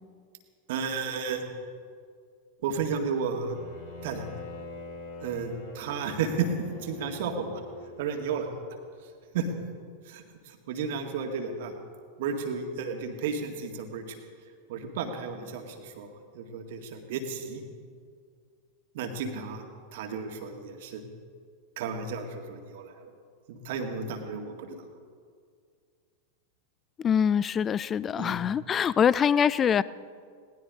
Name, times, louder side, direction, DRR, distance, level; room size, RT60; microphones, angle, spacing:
voice 1, 0.7-1.5 2.6-3.6 4.0-4.3 5.2-6.5 6.8-7.6 8.0-8.5 9.3-9.5 10.1-11.7 12.2-14.2 14.7-16.1 16.3-17.6 18.9-19.6 19.9-21.0 21.8-23.1 23.5-24.8 28.2-28.4, right 5 dB, 55° right, 4 dB, 1.9 m, -33 dB
Bowed string instrument, 3.5-8.4, left 3 dB, 60° left, 5.2 m, -44 dB
voice 2, 27.0-29.8, left 8 dB, 25° left, 20 dB, 0.4 m, -24 dB
20.5 x 18.0 x 3.7 m, 2.1 s
figure-of-eight pair, 90°, 0 cm